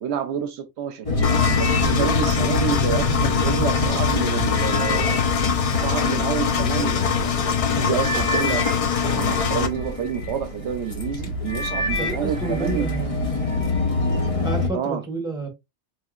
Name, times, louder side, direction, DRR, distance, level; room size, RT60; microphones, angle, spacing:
voice 1, 0.0-1.1 1.4-5.2 5.7-8.7 9.0-12.8 14.7-15.0, right 8 dB, 75° right, 0.8 m, -28 dB
sound 1, 1.1-14.7, left 2 dB, 35° left, 0.9 m, -27 dB
sound 2, 1.2-3.5 4.0-6.9 7.6-7.7 8.0-10.4 10.9-11.2 11.5-13.0 13.3-13.8 14.4-14.5, left 2 dB, 85° left, 2.6 m, -32 dB
Engine, 1.2-9.7, left 6 dB, 55° left, 0.4 m, -23 dB
voice 2, 12.0-13.2 14.4-15.5, right 2 dB, 5° right, 1.2 m, -30 dB
4.4 x 2.7 x 2.3 m
omnidirectional pair, 1.2 m